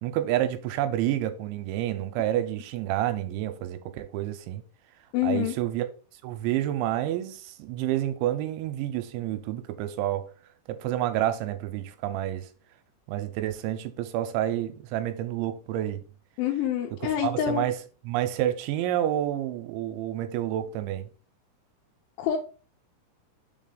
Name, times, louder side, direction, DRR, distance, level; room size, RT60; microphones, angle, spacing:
voice 1, 0.0-4.6 5.2-5.9 6.2-10.3 10.7-12.5 13.1-16.0 17.0-17.8 18.0-21.1, right 12 dB, 90° right, 3.0 m, -29 dB
voice 2, 5.1-5.5 16.4-17.7 22.2-22.4, left 10 dB, 85° left, 3.3 m, -26 dB
6.7 x 4.1 x 3.9 m
omnidirectional pair, 5.3 m